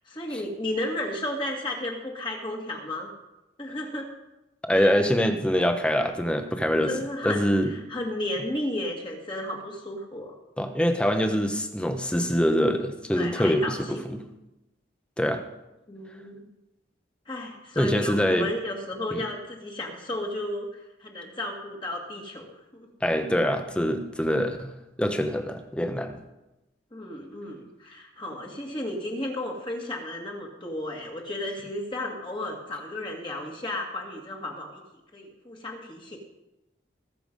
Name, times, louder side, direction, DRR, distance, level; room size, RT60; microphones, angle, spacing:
voice 1, 0.1-3.1 3.6-4.1 4.7-5.0 6.9-10.4 13.1-14.0 15.9-16.5 17.3-22.9 26.9-34.8 35.1-36.2, left 1 dB, 25° left, 0 dB, 2.0 m, -33 dB
voice 2, 4.7-6.9 7.2-7.7 10.6-14.2 15.2-15.4 17.8-18.5 19.1-19.2 23.0-24.7 25.0-26.2, equal, 5° left, 6 dB, 0.9 m, -24 dB
20.0 x 6.9 x 5.3 m, 0.98 s
head